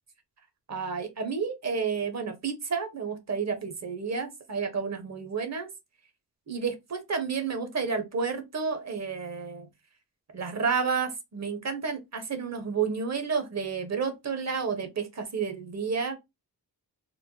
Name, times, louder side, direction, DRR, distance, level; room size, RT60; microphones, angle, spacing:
voice 1, 0.7-5.7 6.5-9.7 10.3-16.2, right 5 dB, 40° right, 1.1 m, -31 dB
4.2 x 2.1 x 3.1 m
cardioid pair, 85°, 40 cm